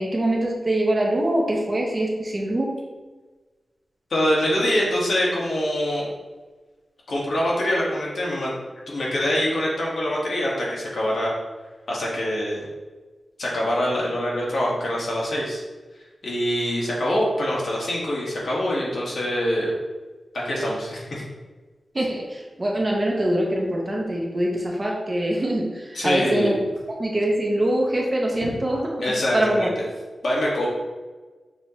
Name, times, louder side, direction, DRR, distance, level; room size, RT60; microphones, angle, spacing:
voice 1, 0.0-2.7 21.9-26.6 27.0-29.7, right 1 dB, 25° right, -1 dB, 0.8 m, -24 dB
voice 2, 4.1-6.1 7.1-8.5 8.9-11.3 11.9-12.7 13.4-15.6 16.2-19.7 20.3-21.2 25.9-26.6 28.4-28.5 29.0-29.7 30.2-30.7, equal, 75° left, -5 dB, 1.3 m, -24 dB
6.1 x 2.9 x 2.9 m, 1.3 s
wide cardioid pair, 140°, 0 cm